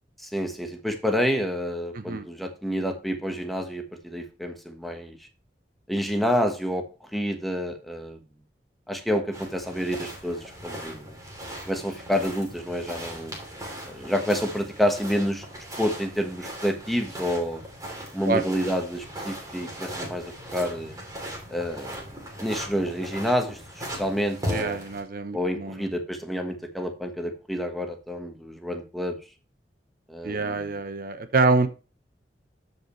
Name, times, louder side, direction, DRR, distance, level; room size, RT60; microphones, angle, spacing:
voice 1, 0.2-5.3 5.9-8.2 8.9-11.2 11.7-13.4 13.9-15.4 15.8-17.6 18.1-21.0 21.5-24.8 25.3-29.2 30.1-30.8, equal, ahead, 4 dB, 1.3 m, -29 dB
voice 2, 1.9-2.2 18.3-18.4 24.5-25.8 30.2-31.7, right 3 dB, 55° right, 10 dB, 0.8 m, -25 dB
sound 1, 9.3-25.0, equal, 20° right, 2.9 m, -38 dB
13.5 x 5.4 x 3.1 m, 0.32 s
head